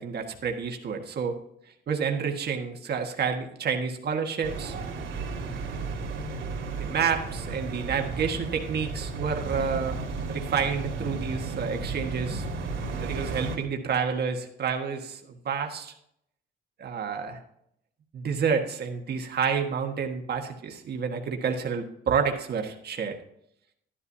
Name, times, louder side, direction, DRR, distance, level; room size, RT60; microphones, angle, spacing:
voice 1, 0.0-1.4 1.9-4.8 6.8-10.0 10.3-12.5 13.0-15.9 16.8-17.4 18.1-23.2, right 6 dB, 55° right, 3 dB, 1.5 m, -29 dB
sound 1, 4.4-13.6, right 3 dB, 80° right, 2.6 m, -34 dB
12.0 x 11.5 x 2.8 m, 0.73 s
cardioid pair, 90°, 20 cm